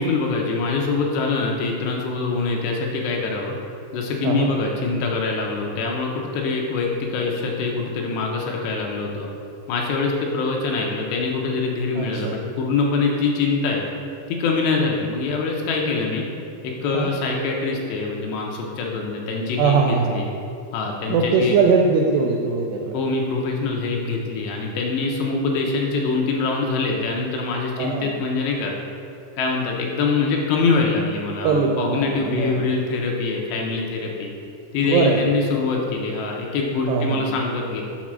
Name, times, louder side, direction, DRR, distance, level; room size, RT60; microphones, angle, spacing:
voice 1, 0.0-3.6 3.9-9.3 9.7-13.8 14.3-16.3 16.6-19.8 20.1-20.3 20.7-21.6 22.9-28.7 29.4-34.3 34.7-37.8, left 4 dB, 80° left, 0 dB, 2.6 m, -24 dB
voice 2, 12.0-12.3 16.9-17.1 19.6-20.3 21.1-23.0 27.8-28.1 31.4-32.6 34.8-35.2 36.9-37.3, right 5 dB, 85° right, 2 dB, 2.3 m, -21 dB
7.4 x 4.0 x 6.1 m, 2.7 s
omnidirectional pair, 5.3 m